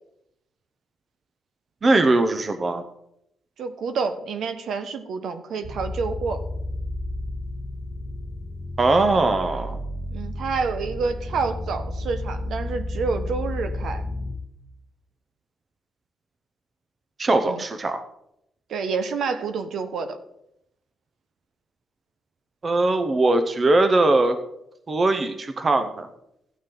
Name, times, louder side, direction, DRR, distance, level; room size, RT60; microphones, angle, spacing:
voice 1, 1.8-2.8 8.8-9.8 17.2-18.0 22.6-24.4 24.9-26.1, right 2 dB, 25° right, 8 dB, 0.8 m, -20 dB
voice 2, 3.6-6.4 10.1-14.0 17.4-17.6 18.7-20.2, right 4 dB, 65° right, 9 dB, 1.1 m, -28 dB
sound 1, 5.6-14.3, left 1 dB, 45° right, 2.8 m, -32 dB
14.0 x 9.4 x 3.9 m, 0.81 s
wide cardioid pair, 160°, 0 cm